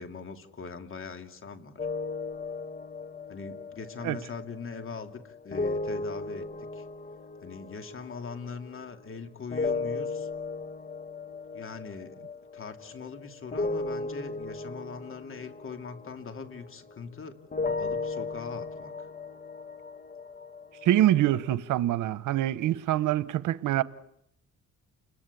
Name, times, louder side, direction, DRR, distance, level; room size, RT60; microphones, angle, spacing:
voice 1, 0.0-1.8 3.3-6.8 7.4-10.3 11.5-12.2 12.5-17.4 17.8-19.1, left 5 dB, 45° left, 2.8 m, -41 dB
sound 1, 1.8-9.2 9.5-17.1 17.5-21.6, left 3 dB, 30° left, 1.6 m, -36 dB
voice 2, 20.8-23.8, right 13 dB, 85° right, 1.1 m, -25 dB
30.0 x 21.0 x 8.5 m
cardioid pair, 90°, 30 cm